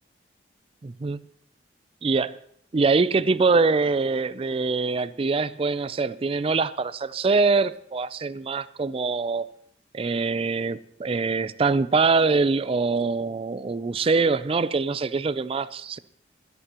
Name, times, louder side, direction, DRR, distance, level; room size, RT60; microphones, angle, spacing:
voice 1, 0.8-1.2 2.0-2.3 2.7-9.5 9.9-16.0, right 4 dB, 30° right, 0.4 m, -24 dB
21.0 x 11.0 x 2.9 m
head